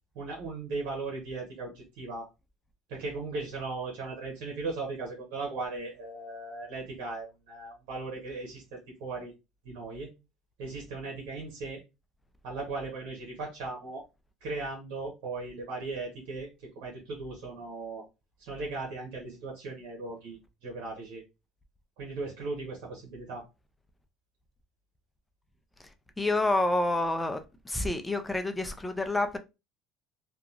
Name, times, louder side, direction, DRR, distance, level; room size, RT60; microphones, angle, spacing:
voice 1, 0.1-2.3 2.9-9.3 9.6-10.1 10.6-11.8 12.4-14.0 14.4-18.0 18.4-21.2 22.0-23.4, right 3 dB, 75° right, 1.1 m, -37 dB
voice 2, 26.2-29.4, left 2 dB, 10° left, 0.5 m, -28 dB
2.9 x 2.3 x 2.5 m
supercardioid pair, 95°, 0 cm